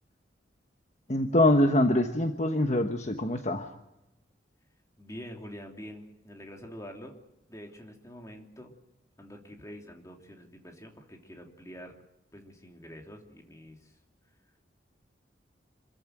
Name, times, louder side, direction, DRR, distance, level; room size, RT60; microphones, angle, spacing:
voice 1, 1.1-3.7, left 1 dB, 40° left, 5 dB, 1.3 m, -24 dB
voice 2, 5.0-7.2 7.5-8.7 9.2-11.9 12.3-14.0, equal, 15° left, 2 dB, 3.0 m, -46 dB
26.5 x 14.5 x 9.2 m, 0.93 s
head